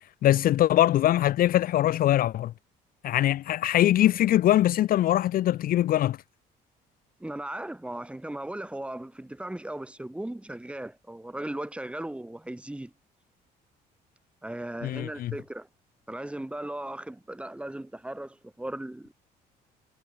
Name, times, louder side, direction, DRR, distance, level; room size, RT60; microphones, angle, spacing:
voice 1, 0.2-2.5 3.0-6.2 14.8-15.3, left 13 dB, 60° left, 0.6 m, -22 dB
voice 2, 7.2-12.9 14.4-15.7 16.1-19.1, right 1 dB, 5° right, 2.9 m, -37 dB
cardioid pair, 110°, 17 cm